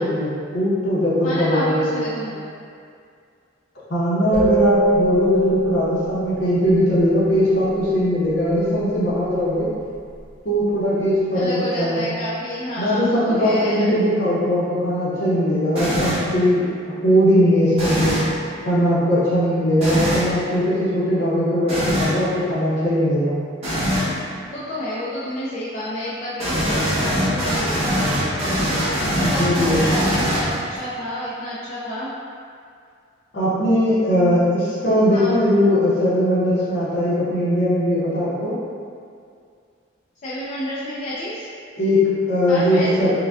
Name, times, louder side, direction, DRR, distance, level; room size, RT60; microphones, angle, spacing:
voice 1, 0.0-2.0 3.9-9.7 10.4-12.0 12.8-18.2 18.6-23.3 29.2-29.9 33.3-38.5 41.8-42.0 42.3-43.1, equal, 60° left, -9 dB, 0.8 m, -19 dB
voice 2, 1.2-2.5 11.3-13.9 24.4-28.6 29.1-32.1 35.1-35.5 40.2-41.5 42.5-42.9, equal, 40° left, -9 dB, 0.4 m, -29 dB
sound 1, 4.3-6.6, right 3 dB, 5° right, 0.8 m, -22 dB
sound 2, 15.8-16.3 17.7-18.3 19.8-20.3 21.7-22.2 23.6-24.1 26.4-30.8, equal, 30° right, 1.1 m, -22 dB
4.7 x 2.2 x 2.4 m, 2.3 s
head